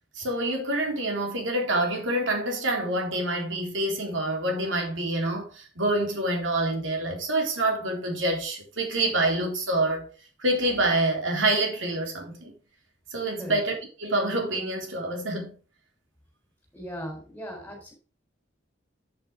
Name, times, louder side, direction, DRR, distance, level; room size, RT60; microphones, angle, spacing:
voice 1, 0.1-10.1 10.4-12.5 13.1-15.5, right 1 dB, 90° right, 3.7 m, -27 dB
voice 2, 16.7-17.9, equal, 10° left, 4.0 m, -38 dB
8.8 x 8.5 x 3.6 m
head